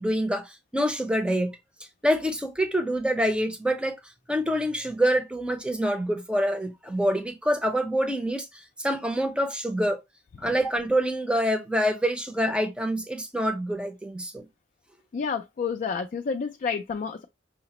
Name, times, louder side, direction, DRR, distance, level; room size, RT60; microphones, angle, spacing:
voice 1, 0.0-1.6 2.0-4.0 4.3-8.5 8.8-10.0 10.4-14.4, equal, 5° right, 0.6 m, -26 dB
voice 2, 15.1-17.3, left 5 dB, 45° left, 0.3 m, -29 dB
5.6 x 2.0 x 2.9 m
head